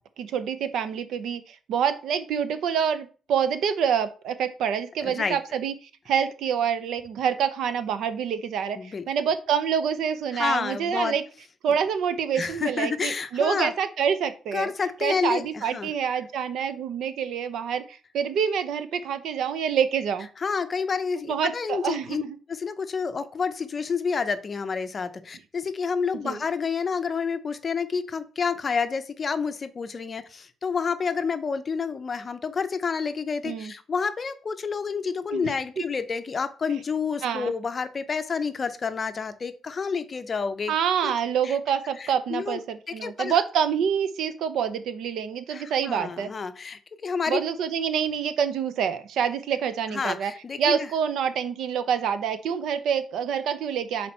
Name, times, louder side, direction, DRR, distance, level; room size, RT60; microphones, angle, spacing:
voice 1, 0.2-5.7 6.1-11.2 11.6-14.7 15.0-20.3 21.3-22.4 26.2-26.4 33.4-33.7 35.3-35.5 37.2-37.5 40.7-46.3 47.3-50.3 50.6-54.1, right 7 dB, 75° right, 12 dB, 0.7 m, -27 dB
voice 2, 5.0-5.4 8.8-9.0 10.3-11.2 12.4-13.7 14.5-15.9 20.4-22.2 22.5-40.7 41.0-41.1 41.4-41.6 42.0-42.6 42.9-43.4 45.5-47.4 49.9-50.9, left 5 dB, 30° left, 10 dB, 0.6 m, -29 dB
5.9 x 4.2 x 4.3 m, 0.37 s
cardioid pair, 145°, 0 cm